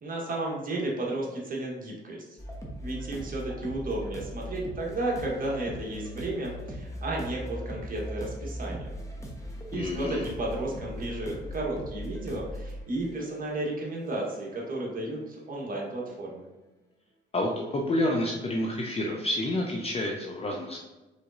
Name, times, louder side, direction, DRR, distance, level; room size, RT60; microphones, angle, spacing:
voice 1, 0.0-2.2 2.8-8.9 9.7-16.4, right 2 dB, 45° right, -2 dB, 1.2 m, -33 dB
sound 1, 2.4-15.1, equal, 15° left, 1.1 m, -39 dB
voice 2, 9.7-10.3 17.3-20.8, left 1 dB, 30° left, 0 dB, 0.6 m, -29 dB
4.8 x 4.0 x 2.6 m, 1.1 s
cardioid pair, 90°, 20 cm